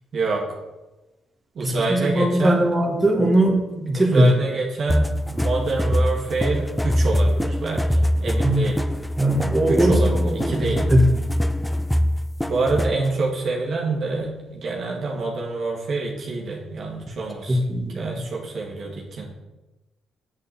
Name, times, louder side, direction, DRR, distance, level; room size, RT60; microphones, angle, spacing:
voice 1, 0.1-0.4 1.6-2.7 3.9-8.9 9.7-10.8 12.5-17.6 18.0-19.3, right 3 dB, 60° right, -2 dB, 1.9 m, -26 dB
voice 2, 1.6-4.4 8.4-8.7 9.2-11.1 17.5-18.0, right 1 dB, 15° right, -2 dB, 2.0 m, -20 dB
sound 1, 4.9-13.1, equal, 5° left, 0.4 m, -23 dB
7.9 x 7.6 x 4.3 m, 1.1 s
supercardioid pair, 70°, 0 cm